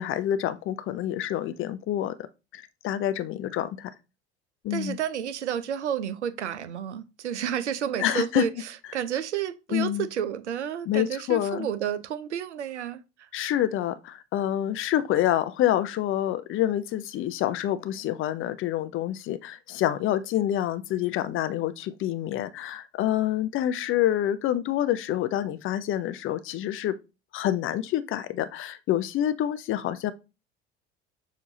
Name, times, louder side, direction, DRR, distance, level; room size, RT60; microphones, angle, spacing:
voice 1, 0.0-2.1 2.5-3.9 4.6-5.0 8.0-8.4 9.7-10.1 10.9-11.7 13.3-26.9 27.3-30.1, left 12 dB, 40° left, 0.5 m, -27 dB
voice 2, 4.7-13.3, right 9 dB, 85° right, 0.5 m, -31 dB
6.5 x 2.7 x 2.7 m
figure-of-eight pair, 65°, 34 cm